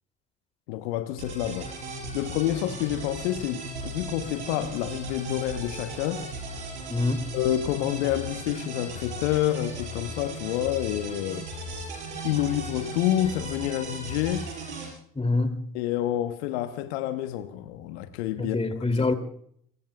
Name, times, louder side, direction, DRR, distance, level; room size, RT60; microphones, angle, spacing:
voice 1, 0.7-1.7 2.1-6.3 7.3-11.5 12.2-14.5 15.7-18.6 19.0-19.1, left 12 dB, 75° left, 1.2 m, -28 dB
sound 1, 1.2-14.9, right 2 dB, 90° right, 5.5 m, -37 dB
voice 2, 6.9-7.3 15.1-15.6 18.4-19.1, left 3 dB, 15° left, 2.9 m, -25 dB
26.5 x 22.5 x 2.4 m
hypercardioid pair, 55°, 33 cm